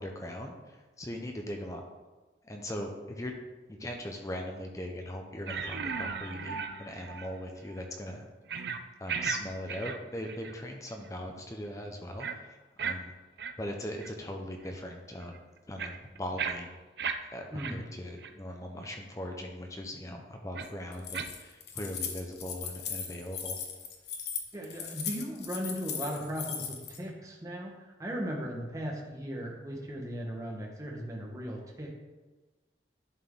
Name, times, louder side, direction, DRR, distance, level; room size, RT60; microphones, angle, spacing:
voice 1, 0.0-1.8 2.4-3.4 3.7-8.3 9.0-13.1 13.6-15.4 15.7-16.7 17.3-23.6, left 1 dB, 20° left, 3 dB, 0.7 m, -40 dB
sound 1, 5.5-7.4 7.7-7.8 8.5-8.8 9.1-9.4 9.7-10.5 10.9-11.1 12.2-12.3 12.8-13.0 13.4-13.5 14.0-14.1 14.6-14.7 15.2-17.1 17.6-17.7 18.2-18.3 18.8-18.9 20.5-20.7 21.1-21.3, right 6 dB, 65° right, 0.5 m, -36 dB
Keys jangling, 20.9-27.0, left 7 dB, 65° left, 0.9 m, -38 dB
voice 2, 24.5-27.7 28.0-32.0, equal, 20° right, -1 dB, 1.1 m, -37 dB
11.0 x 4.3 x 3.7 m, 1.2 s
head